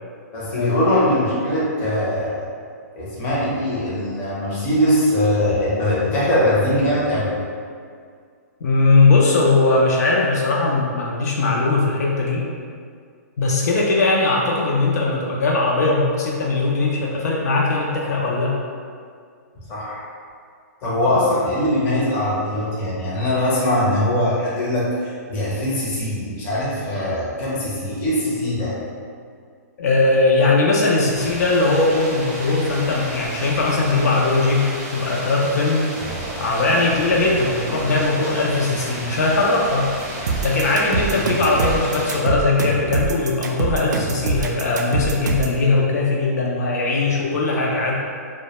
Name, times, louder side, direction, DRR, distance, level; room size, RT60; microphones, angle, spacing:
voice 1, 0.3-2.5 3.0-7.4 19.7-20.1 20.8-28.8 41.1-41.3, left 1 dB, 20° left, -7 dB, 0.6 m, -21 dB
voice 2, 8.6-12.5 13.4-18.6 29.8-35.9 36.4-40.0 40.4-47.9, left 3 dB, 70° left, -3 dB, 0.4 m, -19 dB
sound 1, 31.1-42.2, right 1 dB, 30° right, 0.7 m, -32 dB
sound 2, 40.3-45.6, right 4 dB, 80° right, 0.3 m, -24 dB
2.1 x 2.1 x 2.9 m, 2.1 s
hypercardioid pair, 155°, 9 cm